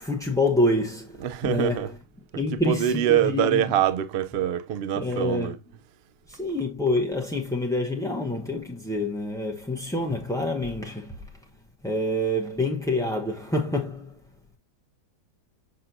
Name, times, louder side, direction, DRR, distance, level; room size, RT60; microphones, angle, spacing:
voice 1, 0.0-2.0 2.4-3.6 4.9-5.5 6.3-11.3 11.8-14.2, left 1 dB, 5° left, 0.4 m, -27 dB
voice 2, 1.2-1.9 2.5-5.6, right 10 dB, 70° right, 0.6 m, -24 dB
6.5 x 5.9 x 2.6 m
omnidirectional pair, 1.7 m